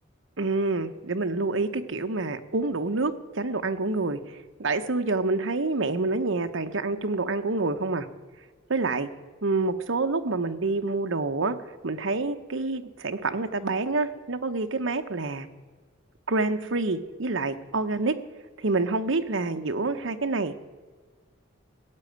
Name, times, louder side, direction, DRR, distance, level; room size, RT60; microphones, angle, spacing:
voice 1, 0.4-8.1 8.7-9.1 9.4-11.5 11.8-15.5 16.3-18.1 18.6-20.7, right 3 dB, 70° right, 7 dB, 0.9 m, -27 dB
15.5 x 8.5 x 9.3 m, 1.5 s
head